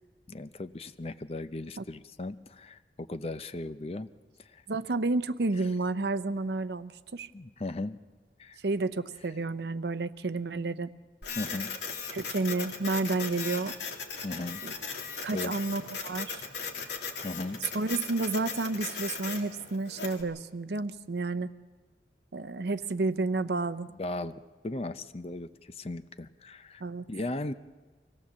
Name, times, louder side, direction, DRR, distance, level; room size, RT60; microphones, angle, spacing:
voice 1, 0.3-4.1 4.4-4.6 7.3-8.0 8.4-8.6 11.4-11.7 14.2-14.6 15.3-15.5 17.2-17.6 24.0-24.3 24.6-26.8 27.1-27.5, left 2 dB, 35° left, 12 dB, 0.6 m, -37 dB
voice 2, 4.7-7.3 8.6-10.9 12.1-13.7 14.6-14.7 15.2-16.4 17.7-21.5 22.3-23.9 26.8-27.1, right 3 dB, 75° right, 12 dB, 0.7 m, -31 dB
Printer, 11.2-20.2, left 5 dB, 80° left, 2.3 m, -38 dB
24.5 x 17.5 x 7.3 m, 1.4 s
head